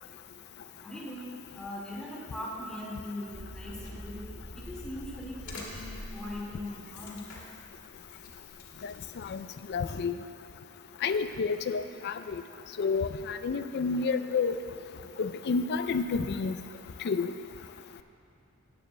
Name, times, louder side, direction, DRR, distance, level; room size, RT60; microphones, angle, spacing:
voice 1, 0.8-1.3 1.5-4.2 4.6-7.3, left 1 dB, 5° left, -6 dB, 1.9 m, -40 dB
sound 1, 3.3-9.6, equal, 75° left, 2.2 m, -46 dB
voice 2, 9.7-10.1 11.0-12.1 12.8-14.5 15.2-16.5 17.0-17.3, left 5 dB, 55° left, 10 dB, 0.4 m, -29 dB
18.5 x 9.1 x 2.2 m, 2.5 s
head